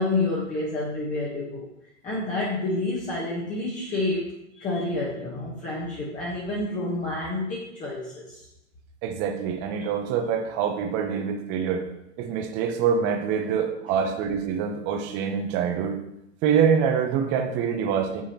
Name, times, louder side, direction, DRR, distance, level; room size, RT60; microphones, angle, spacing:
voice 1, 0.0-1.7 2.0-8.4 13.9-14.0, left 2 dB, 20° left, -5 dB, 1.2 m, -29 dB
voice 2, 9.0-11.8 12.2-16.0 16.4-18.2, right 7 dB, 30° right, 5 dB, 0.8 m, -25 dB
8.3 x 4.8 x 2.9 m, 0.84 s
hypercardioid pair, 135°, 37 cm